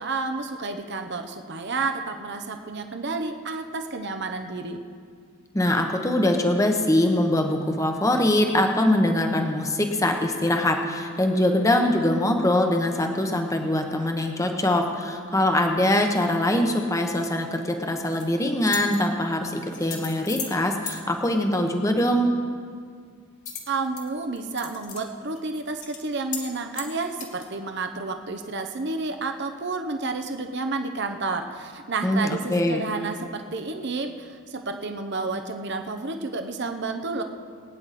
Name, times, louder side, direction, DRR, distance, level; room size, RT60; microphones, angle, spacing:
voice 1, 0.0-4.8 23.7-37.2, right 3 dB, 50° right, 6 dB, 0.8 m, -30 dB
voice 2, 5.5-22.3 32.0-32.8, left 1 dB, 15° left, 4 dB, 1.0 m, -23 dB
sound 1, 17.9-18.2 18.6-19.0 19.7-20.6 20.9-21.0 23.5-24.0 24.4-25.0 25.4-25.5 25.8-26.0 26.3-26.5 26.7-27.5, left 6 dB, 35° left, 2.0 m, -35 dB
22.5 x 9.6 x 4.2 m, 2.1 s
head